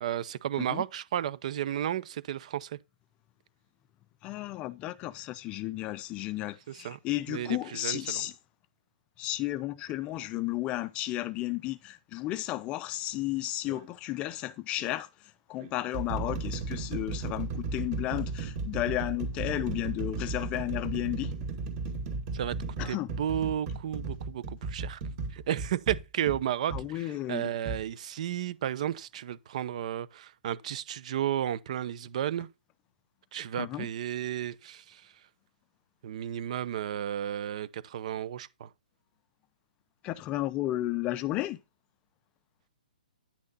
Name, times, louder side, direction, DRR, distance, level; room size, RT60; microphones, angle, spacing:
voice 1, 0.0-2.8 6.7-7.0 7.3-8.2 22.3-22.6 22.9-25.0 25.3-32.5 33.3-35.0 36.0-38.7, right 10 dB, 50° right, 0.8 m, -33 dB
voice 2, 4.2-8.3 9.2-21.3 22.8-23.1 26.7-27.5 33.6-33.9 40.0-41.6, left 16 dB, 25° left, 0.5 m, -33 dB
sound 1, 13.6-13.9 14.8-14.9 15.6-26.9 27.6-27.8, right 4 dB, 30° right, 2.3 m, -35 dB
10.0 x 6.4 x 4.0 m
hypercardioid pair, 150°, 5 cm